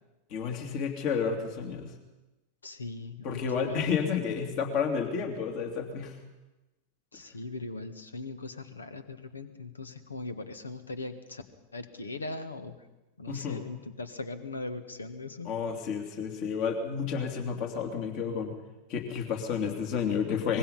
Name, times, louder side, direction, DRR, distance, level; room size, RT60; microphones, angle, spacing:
voice 1, 0.3-1.9 3.2-6.1 13.3-13.6 15.4-18.5 18.9-20.6, left 6 dB, 40° left, 4 dB, 3.0 m, -31 dB
voice 2, 2.6-3.9 7.1-11.4 11.7-12.8 13.2-15.5, left 3 dB, 75° left, 11 dB, 1.7 m, -39 dB
24.5 x 21.5 x 5.7 m, 1.0 s
figure-of-eight pair, 90°, 0 cm